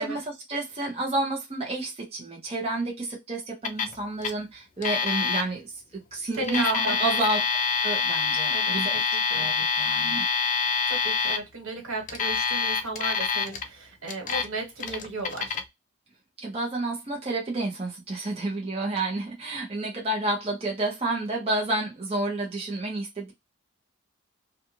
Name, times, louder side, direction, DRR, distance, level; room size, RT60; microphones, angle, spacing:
voice 1, 0.0-5.6 5.9-7.4 7.8-9.0 9.3-10.2 16.4-23.3, right 2 dB, 30° right, 0.7 m, -30 dB
Alarm, 3.6-4.0 4.2-4.3 4.8-5.4 6.3-11.4 12.1-13.6 14.1-14.5 14.8-15.6, left 5 dB, 40° left, 0.4 m, -26 dB
voice 2, 6.4-7.2 8.5-9.4 10.9-15.5, right 2 dB, 90° right, 1.4 m, -34 dB
2.4 x 2.4 x 2.9 m
head